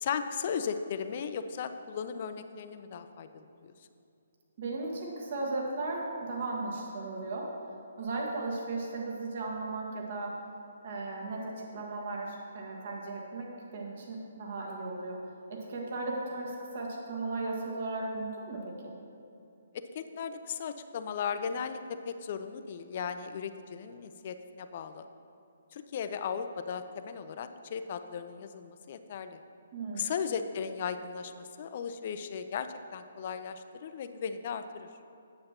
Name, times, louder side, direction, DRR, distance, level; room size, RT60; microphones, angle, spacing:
voice 1, 0.0-3.7 19.7-21.8 22.1-25.1 25.7-29.4 29.9-34.9, left 7 dB, 45° left, 10 dB, 0.4 m, -36 dB
voice 2, 4.6-7.5 8.0-10.4 10.8-15.2 15.5-18.9 29.7-30.1, right 2 dB, 50° right, -1 dB, 1.5 m, -36 dB
8.7 x 7.4 x 2.9 m, 2.7 s
figure-of-eight pair, 135°, 0 cm